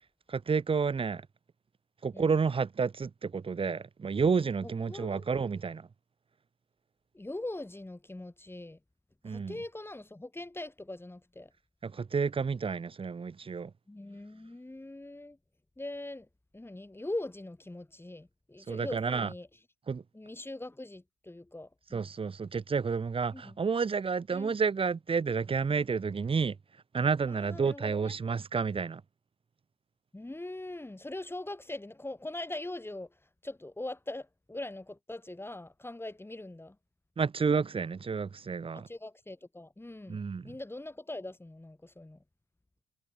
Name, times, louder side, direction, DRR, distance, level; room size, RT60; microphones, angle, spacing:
voice 1, 0.3-1.2 2.0-5.8 9.2-9.5 11.8-13.7 18.7-19.3 19.9-20.0 21.9-26.6 26.9-29.0 37.2-38.9 40.1-40.4, right 5 dB, 25° right, 0.8 m, -30 dB
voice 2, 4.6-5.3 7.1-8.8 9.2-11.5 13.9-15.4 15.8-16.3 16.5-19.6 20.1-22.1 23.3-23.6 24.3-24.6 27.3-28.2 30.1-36.8 38.7-42.2, left 2 dB, 10° left, 5.7 m, -42 dB
cardioid pair, 90°, 20 cm